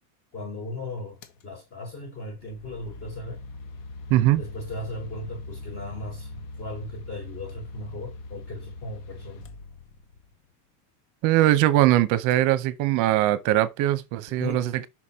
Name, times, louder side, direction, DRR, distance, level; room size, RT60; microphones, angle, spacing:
voice 1, 0.3-3.4 4.4-6.3 6.6-9.4 14.4-14.6, left 1 dB, 30° left, 1.3 m, -37 dB
sound 1, 1.2-1.4 2.3-10.3, left 2 dB, 75° left, 1.3 m, -41 dB
voice 2, 4.1-4.4 11.2-14.8, right 14 dB, 40° right, 0.6 m, -21 dB
5.8 x 4.7 x 4.3 m
cardioid pair, 175°, 46 cm